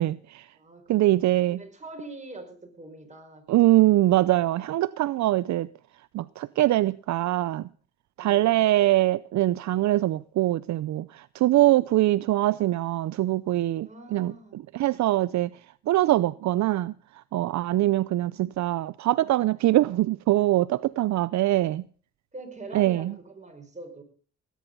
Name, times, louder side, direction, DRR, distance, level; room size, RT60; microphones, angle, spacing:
voice 1, 0.0-0.5 0.9-1.6 3.5-5.7 6.1-7.7 8.2-14.3 14.7-15.5 15.9-16.9 17.3-21.8 22.7-23.1, right 15 dB, 65° right, 0.6 m, -23 dB
voice 2, 0.5-3.6 13.8-14.6 22.3-24.0, right 2 dB, 25° right, 5.1 m, -44 dB
18.0 x 10.5 x 5.4 m
cardioid pair, 90°, 30 cm